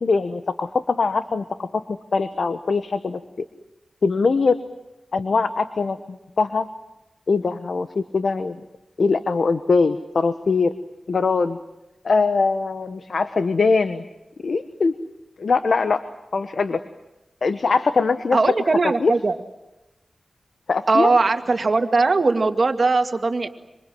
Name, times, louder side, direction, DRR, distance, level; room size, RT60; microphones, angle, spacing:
voice 1, 0.0-1.8 2.1-3.2 4.0-4.6 5.1-6.7 7.3-8.5 9.0-10.7 11.1-11.6 12.0-14.0 14.4-14.9 15.4-16.0 16.3-16.8 17.4-18.4 19.0-19.1 20.7-21.1, left 4 dB, 75° left, 10 dB, 1.2 m, -21 dB
voice 2, 18.3-19.4 20.9-23.5, right 3 dB, 55° right, 7 dB, 2.1 m, -19 dB
26.5 x 26.0 x 7.8 m, 0.98 s
wide cardioid pair, 80°, 0 cm